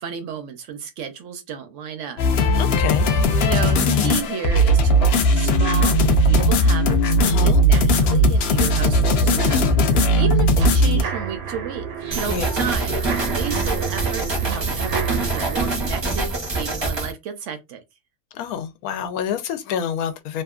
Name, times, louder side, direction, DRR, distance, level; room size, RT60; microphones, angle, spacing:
voice 1, 0.0-2.2 3.4-9.7 10.1-11.9 12.1-13.0 13.2-16.3 16.6-17.8, right 7 dB, 65° right, 0.8 m, -32 dB
sound 1, 2.2-11.0, equal, 60° left, 0.6 m, -17 dB
voice 2, 2.6-3.4 7.2-7.6 12.3-12.6 18.3-20.4, left 8 dB, 85° left, 1.0 m, -28 dB
sound 2, 9.4-15.8, right 6 dB, 90° right, 1.2 m, -31 dB
sound 3, 12.1-17.1, right 3 dB, 25° right, 0.6 m, -25 dB
2.8 x 2.4 x 2.3 m
omnidirectional pair, 1.5 m